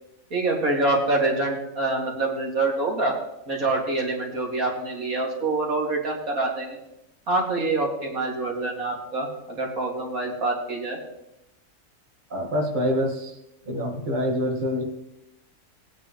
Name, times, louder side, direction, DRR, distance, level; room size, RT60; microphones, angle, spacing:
voice 1, 0.3-3.1 3.5-6.8 7.3-11.0, right 2 dB, 90° right, -1 dB, 2.9 m, -26 dB
voice 2, 12.3-13.2 13.7-14.8, equal, 35° right, 0 dB, 1.8 m, -25 dB
19.5 x 9.4 x 3.1 m, 0.87 s
omnidirectional pair, 1.4 m